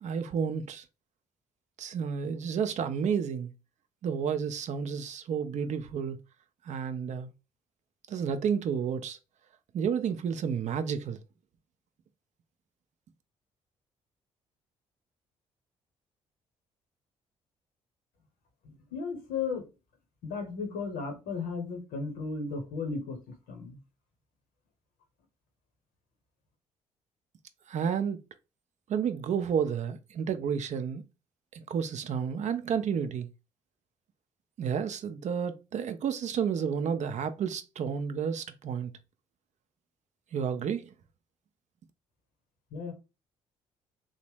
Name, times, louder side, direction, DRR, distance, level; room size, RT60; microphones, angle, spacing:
voice 1, 0.0-0.8 1.8-3.5 4.0-6.2 6.7-7.3 8.1-9.2 9.7-11.2 27.7-28.2 28.9-31.0 31.5-33.3 34.6-38.9 40.3-40.9, right 7 dB, 45° right, 0.4 m, -31 dB
voice 2, 18.6-19.7 20.2-23.8 42.7-42.9, left 4 dB, 70° left, 0.9 m, -35 dB
2.9 x 2.1 x 3.2 m
hypercardioid pair, 45°, 16 cm